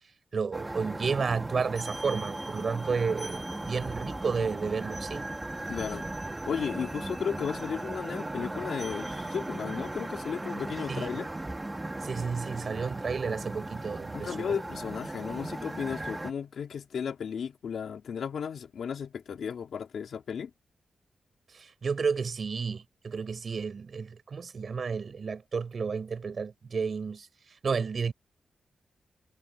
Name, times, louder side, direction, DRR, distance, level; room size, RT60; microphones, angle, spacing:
voice 1, 0.3-5.3 10.9-11.1 12.0-14.6 21.5-27.3 27.6-28.1, right 5 dB, 55° right, 6.5 m, -32 dB
sound 1, 0.5-16.3, right 2 dB, 20° right, 2.7 m, -37 dB
voice 2, 5.7-6.1 6.5-11.3 14.1-20.5, left 7 dB, 80° left, 3.8 m, -34 dB
wide cardioid pair, 95°, 0 cm